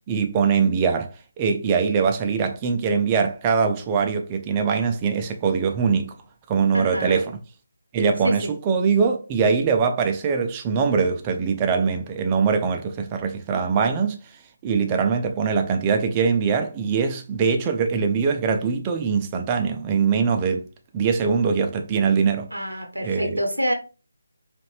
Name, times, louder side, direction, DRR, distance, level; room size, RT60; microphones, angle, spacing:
voice 1, 0.1-1.1 1.4-6.1 6.5-7.4 7.9-14.2 14.6-20.6 20.9-22.5 23.0-23.4, right 5 dB, 20° right, 0.5 m, -22 dB
voice 2, 6.7-7.2 8.2-8.3 22.5-23.7, equal, 85° right, 0.9 m, -26 dB
4.8 x 2.5 x 3.2 m
figure-of-eight pair, 150°, 0 cm